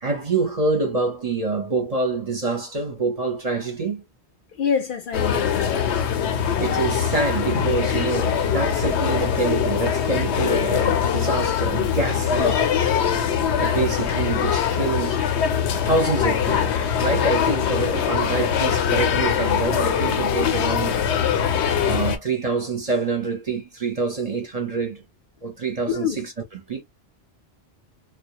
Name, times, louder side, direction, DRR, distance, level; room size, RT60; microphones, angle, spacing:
voice 1, 0.0-4.0 6.6-12.7 13.6-15.2 15.8-21.2 21.8-25.0 25.4-26.8, right 3 dB, 40° right, 0.7 m, -26 dB
voice 2, 4.5-5.9 25.9-26.2, left 7 dB, 60° left, 0.7 m, -26 dB
sound 1, 5.1-22.2, left 8 dB, 90° left, 0.9 m, -22 dB
2.3 x 2.1 x 2.8 m
omnidirectional pair, 1.1 m